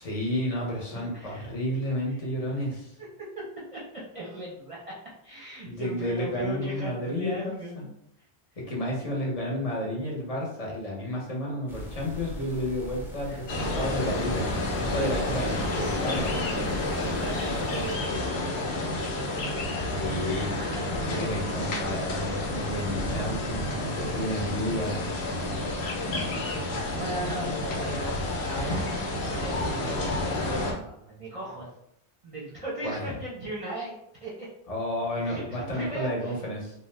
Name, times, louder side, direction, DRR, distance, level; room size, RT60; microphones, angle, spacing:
voice 1, 0.0-2.9 5.6-7.8 8.6-14.5 14.8-16.5 19.9-20.6 21.1-25.1 26.1-26.3 32.8-33.1 34.7-36.7, left 1 dB, 40° left, -3 dB, 0.8 m, -31 dB
voice 2, 0.9-1.5 2.1-2.2 3.0-3.4 3.7-3.8 4.1-5.0 5.2-7.9 13.3-13.4 14.7-15.1 16.4-18.6 20.6-21.3 24.0-24.5 26.0-31.7 32.2-34.5 35.2-36.4, right 2 dB, 35° right, -7 dB, 0.7 m, -38 dB
sound 1, 11.7-18.0, equal, 5° right, 0.3 m, -40 dB
sound 2, 13.5-30.7, left 2 dB, 75° left, 0.9 m, -30 dB
2.7 x 2.0 x 3.2 m, 0.76 s
omnidirectional pair, 1.1 m